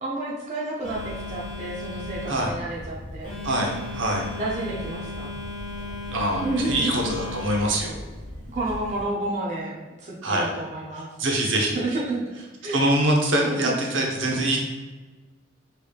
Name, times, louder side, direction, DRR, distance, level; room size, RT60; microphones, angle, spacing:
voice 1, 0.0-3.3 4.4-5.3 6.3-7.1 7.7-7.8 8.5-11.1 11.7-12.2 12.6-12.8 13.4-13.8, right 2 dB, 35° right, -4 dB, 0.5 m, -30 dB
Telephone, 0.8-9.0, left 2 dB, 45° left, 1.4 m, -36 dB
voice 2, 3.4-4.3 6.1-8.0 10.2-10.5 10.9-11.8 12.7-14.6, right 1 dB, 70° right, 0 dB, 0.7 m, -24 dB
4.6 x 3.0 x 2.3 m, 1.3 s
head